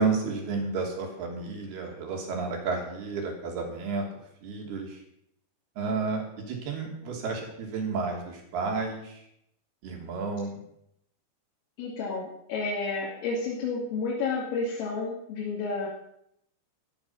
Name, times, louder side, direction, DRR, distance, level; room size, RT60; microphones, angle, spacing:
voice 1, 0.0-4.1 4.4-5.0 5.8-9.2 9.8-10.6, right 4 dB, 55° right, 1 dB, 4.8 m, -31 dB
voice 2, 11.8-15.9, left 4 dB, 85° left, -4 dB, 5.4 m, -31 dB
15.5 x 13.0 x 5.7 m, 0.75 s
omnidirectional pair, 5.8 m